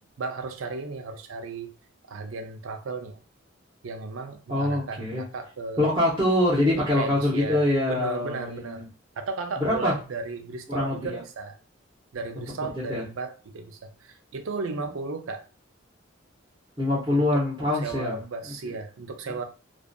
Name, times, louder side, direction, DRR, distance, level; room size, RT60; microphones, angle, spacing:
voice 1, 0.2-1.7 2.1-3.2 3.8-5.9 6.8-8.8 9.2-11.6 12.1-15.5 17.1-19.4, right 4 dB, 90° right, 0.5 m, -35 dB
voice 2, 4.5-5.2 5.8-8.9 9.6-9.9 10.7-11.2 12.9-13.0 16.8-18.2, left 1 dB, 20° right, 0.8 m, -24 dB
2.5 x 2.4 x 2.2 m
head